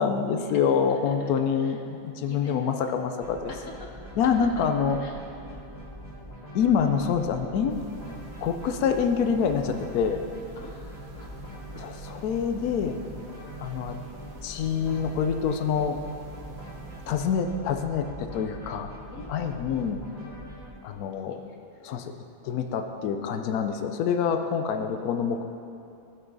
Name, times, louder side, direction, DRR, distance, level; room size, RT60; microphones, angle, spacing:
voice 1, 0.0-3.5 4.2-5.0 6.5-7.8 8.4-10.2 11.7-13.0 13.6-14.0 14.4-16.0 17.1-18.9 19.3-20.0 20.8-21.4 21.8-22.1 22.4-25.4, left 7 dB, 85° left, 6 dB, 1.1 m, -26 dB
voice 2, 0.9-1.3 1.6-1.7 2.3-2.7 3.5-3.9 4.2-4.6 5.0-5.2 10.6-11.3 11.7-12.0 19.1-19.9 20.5-21.6 21.8-22.0 25.0-25.4, left 4 dB, 60° left, 2 dB, 1.2 m, -47 dB
sound 1, 3.2-20.7, equal, 25° left, 1.8 m, -43 dB
sound 2, 7.7-17.4, right 5 dB, 75° right, 1.4 m, -47 dB
15.0 x 5.6 x 4.0 m, 2.6 s
omnidirectional pair, 1.6 m